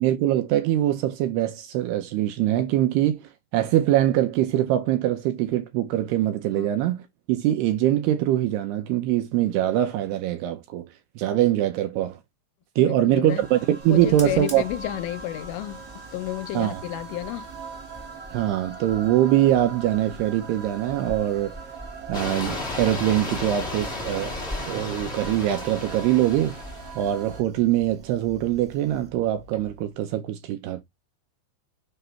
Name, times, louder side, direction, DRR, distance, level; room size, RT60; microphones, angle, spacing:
voice 1, 0.0-3.2 3.5-7.0 7.3-10.9 11.2-12.2 12.8-14.6 16.5-16.8 18.3-21.6 22.1-24.4 24.7-26.6 27.0-30.8, right 13 dB, 80° right, 2.5 m, -23 dB
voice 2, 12.8-13.4 13.9-15.8 16.1-17.5, left 15 dB, 80° left, 2.8 m, -31 dB
sound 1, 13.3-27.4, right 6 dB, 45° right, 2.1 m, -41 dB
Fire, 13.8-29.9, equal, 5° left, 1.0 m, -45 dB
sound 2, 22.1-27.0, left 3 dB, 55° left, 0.7 m, -34 dB
6.7 x 3.0 x 5.6 m
omnidirectional pair, 5.2 m